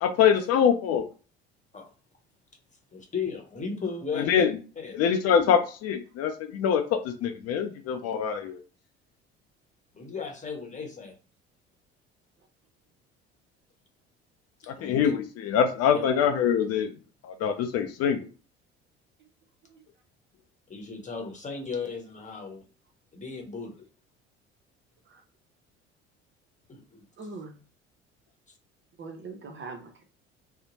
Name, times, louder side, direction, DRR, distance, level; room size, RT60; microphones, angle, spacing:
voice 1, 0.0-1.1 4.2-4.5 4.9-8.6 14.7-16.9 17.2-18.3, left 8 dB, 50° left, 0.5 m, -24 dB
voice 2, 2.9-4.4 4.8-5.0 9.9-11.2 14.6-15.1 15.9-16.0 20.7-22.6 23.1-23.9 26.7-27.0, left 5 dB, 25° left, 1.0 m, -36 dB
voice 3, 27.2-27.6 29.0-30.0, right 3 dB, 35° right, 0.7 m, -42 dB
2.7 x 2.0 x 2.8 m
hypercardioid pair, 60°, 32 cm